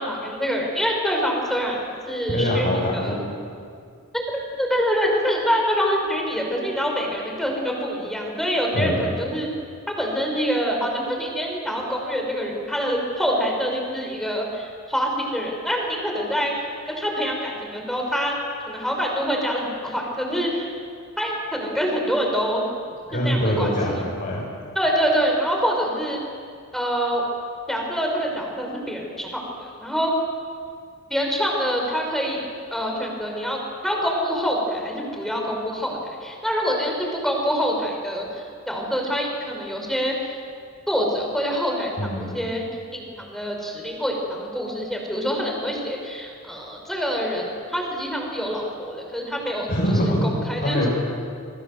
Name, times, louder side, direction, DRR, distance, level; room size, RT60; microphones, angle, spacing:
voice 1, 0.0-2.7 2.9-3.1 4.1-9.5 10.0-18.3 18.7-20.7 21.2-22.6 23.1-23.7 24.8-26.2 26.7-27.2 27.7-30.1 31.1-32.4 32.7-40.2 40.9-49.7 50.0-50.9, equal, ahead, 0 dB, 5.5 m, -25 dB
voice 2, 2.3-3.3 8.7-9.0 23.1-24.4 42.0-42.3 49.7-50.3 50.6-50.9, equal, 50° left, -6 dB, 7.4 m, -23 dB
28.0 x 23.0 x 7.9 m, 2.2 s
head